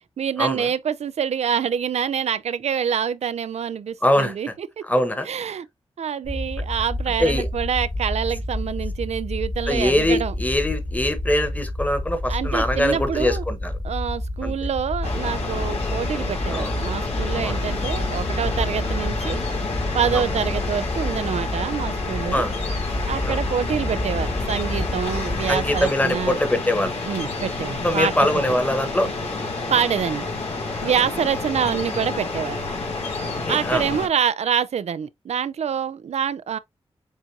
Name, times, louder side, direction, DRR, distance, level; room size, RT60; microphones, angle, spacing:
voice 1, 0.2-4.8 5.2-5.7 6.0-10.3 12.3-13.4 13.8-19.4 19.9-22.4 23.1-26.4 27.1-28.4 29.7-30.3 30.8-32.6 33.5-36.6, right 8 dB, 85° right, 0.4 m, -26 dB
voice 2, 4.0-4.3 4.8-5.3 7.2-7.5 9.7-13.7 14.4-14.5 16.5-16.7 17.3-17.6 20.1-20.3 22.3-22.5 23.2-23.4 25.5-27.0 27.8-29.1 30.8-30.9 33.2-33.8, left 1 dB, 15° left, 1.4 m, -23 dB
sound 1, 6.2-25.9, left 1 dB, 40° left, 1.9 m, -29 dB
sound 2, 15.0-34.1, left 3 dB, 80° left, 2.9 m, -29 dB
7.3 x 2.6 x 2.8 m
cardioid pair, 50°, 11 cm